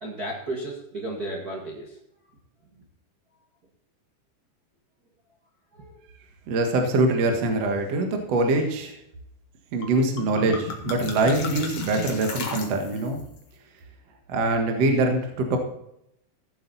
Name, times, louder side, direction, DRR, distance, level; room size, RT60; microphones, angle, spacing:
voice 1, 0.0-2.0 5.7-6.0, right 1 dB, 90° right, -2 dB, 0.8 m, -34 dB
voice 2, 6.5-9.0 9.7-13.2 14.3-15.6, right 2 dB, 60° right, 4 dB, 1.7 m, -23 dB
sound 1, 9.8-9.9 10.2-13.2, left 4 dB, 55° left, 1.7 m, -34 dB
15.5 x 8.0 x 4.1 m, 0.78 s
omnidirectional pair, 5.3 m